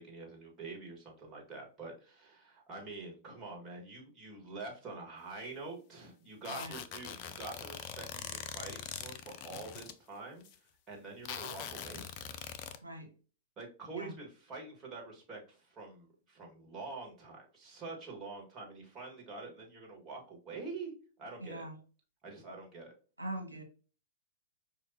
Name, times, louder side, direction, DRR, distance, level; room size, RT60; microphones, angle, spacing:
voice 1, 0.0-12.0 13.6-20.9 21.2-21.6 22.2-22.9, right 3 dB, 25° right, 0 dB, 1.8 m, -46 dB
sound 1, 6.4-9.9 10.4-10.5 11.2-12.8, left 8 dB, 45° left, 0.5 m, -43 dB
voice 2, 21.4-21.8 23.2-23.6, right 1 dB, 85° right, 3 dB, 1.2 m, -42 dB
5.1 x 2.6 x 2.8 m, 0.37 s
figure-of-eight pair, 100°, 0 cm